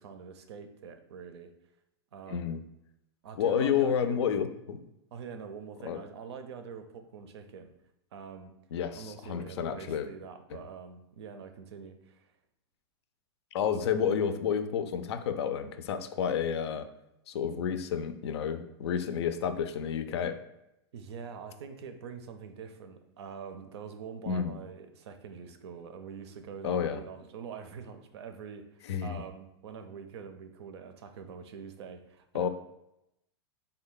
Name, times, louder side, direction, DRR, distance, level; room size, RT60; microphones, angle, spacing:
voice 1, 0.0-1.5 2.1-2.5 3.2-4.3 5.1-7.7 8.1-8.5 9.0-12.3 20.9-32.5, right 6 dB, 75° right, 8 dB, 0.5 m, -45 dB
voice 2, 2.3-2.6 3.4-4.8 5.8-6.0 8.7-10.1 10.5-10.6 13.5-16.9 17.3-20.4 24.3-24.6 26.6-27.0 28.9-29.2 32.3-32.5, left 8 dB, 75° left, 9 dB, 0.4 m, -30 dB
3.3 x 2.2 x 3.8 m, 0.85 s
hypercardioid pair, 140°, 14 cm